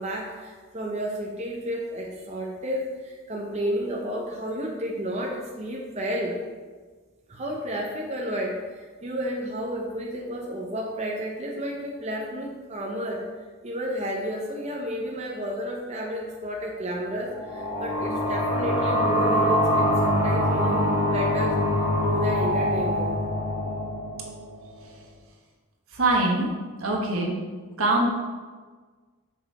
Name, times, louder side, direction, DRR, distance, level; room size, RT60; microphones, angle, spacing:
voice 1, 0.0-6.4 7.3-13.2 13.6-21.6 22.0-23.1, equal, 30° right, -1 dB, 0.7 m, -31 dB
sound 1, 17.3-24.7, equal, 15° right, 2.1 m, -24 dB
voice 2, 25.9-26.5 26.8-27.4 27.8-28.1, right 2 dB, 80° right, 0 dB, 1.3 m, -23 dB
6.1 x 5.4 x 4.1 m, 1.4 s
head